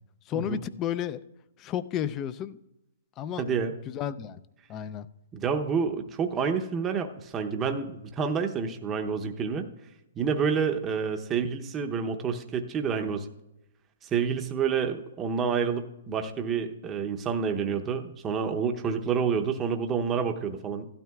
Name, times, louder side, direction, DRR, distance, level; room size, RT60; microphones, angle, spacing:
voice 1, 0.3-1.2 1.6-2.6 3.2-3.4 3.9-4.4 4.7-5.1, left 10 dB, 25° left, 16 dB, 0.5 m, -32 dB
voice 2, 3.4-3.7 5.3-9.7 10.2-13.3 14.0-20.9, right 6 dB, 20° right, 5 dB, 0.8 m, -28 dB
15.5 x 12.5 x 2.4 m, 0.91 s
hypercardioid pair, 135°, 0 cm